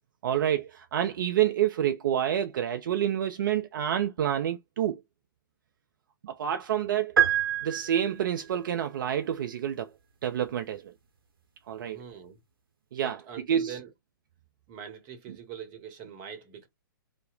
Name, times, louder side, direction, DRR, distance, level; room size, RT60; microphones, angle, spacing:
voice 1, 0.2-5.0 6.2-7.2 7.6-9.9 10.2-10.9 11.7-12.0 12.9-13.2 13.5-13.8, right 10 dB, 60° right, 0.4 m, -28 dB
sound 1, 7.2-8.5, right 9 dB, 80° right, 0.8 m, -26 dB
voice 2, 11.8-12.4 13.0-13.9 14.7-16.7, right 8 dB, 35° right, 0.9 m, -43 dB
2.8 x 2.0 x 3.8 m
hypercardioid pair, 125°, 12 cm